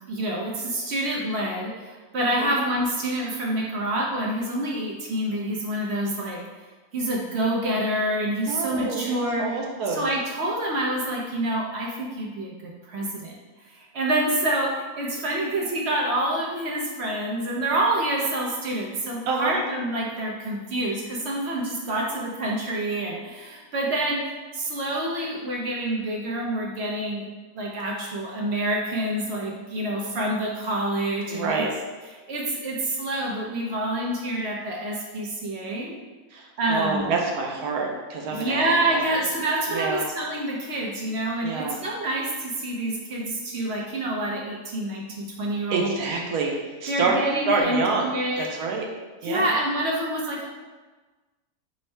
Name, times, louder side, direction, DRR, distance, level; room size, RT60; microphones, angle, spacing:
voice 1, 0.1-6.4 6.9-9.6 9.9-13.4 13.6-24.2 24.5-27.3 27.5-31.7 32.3-36.0 36.6-37.1 38.3-46.2 46.9-48.5 49.2-50.5, right 1 dB, 65° right, -2 dB, 0.7 m, -27 dB
voice 2, 2.2-2.5 8.5-10.1 19.3-19.6 31.3-31.7 36.3-39.2 39.7-40.0 41.4-41.8 45.7-46.5 46.8-47.2 47.5-48.9 49.2-49.5, right 4 dB, 90° right, 1 dB, 1.1 m, -27 dB
3.5 x 2.1 x 4.3 m, 1.3 s
omnidirectional pair, 1.6 m